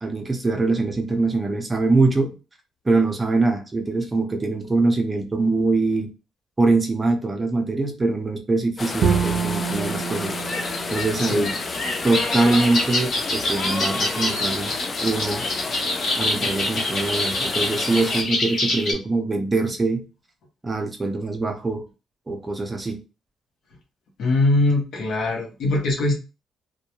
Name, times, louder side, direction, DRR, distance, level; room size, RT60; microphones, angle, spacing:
voice 1, 0.0-2.3 2.8-6.1 6.6-10.3 10.9-11.5 12.0-14.7 15.0-15.4 16.2-20.1 20.6-21.8 22.3-23.0, right 3 dB, 25° right, 4 dB, 0.6 m, -23 dB
sound 1, 8.8-18.2, left 3 dB, 35° left, 0.4 m, -31 dB
Bowed string instrument, 9.0-12.1, right 6 dB, 80° right, 0.4 m, -27 dB
sound 2, 10.4-18.9, left 2 dB, 55° left, 1.1 m, -26 dB
voice 2, 11.2-11.5 18.0-18.2 24.2-26.1, left 2 dB, 75° left, 1 dB, 0.8 m, -22 dB
2.2 x 2.2 x 2.9 m, 0.32 s
cardioid pair, 90°, 0 cm